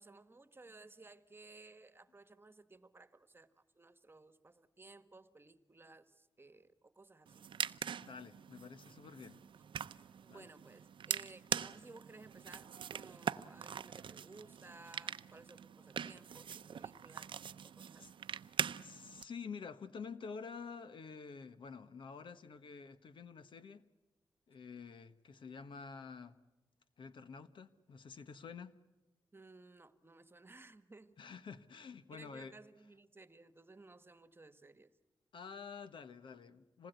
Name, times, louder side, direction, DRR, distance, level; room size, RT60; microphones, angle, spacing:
voice 1, 0.0-3.5 3.7-7.5 10.2-18.1 29.3-31.2 32.1-34.9, right 3 dB, 25° right, 1.4 m, -58 dB
sound 1, 7.3-19.2, right 8 dB, 75° right, 0.7 m, -43 dB
voice 2, 8.0-9.4 10.3-10.5 18.0-18.1 18.8-23.8 24.5-26.4 27.0-28.8 31.2-32.6 35.3-36.9, left 5 dB, 70° left, 1.3 m, -49 dB
27.0 x 20.0 x 8.1 m
cardioid pair, 85°, 9 cm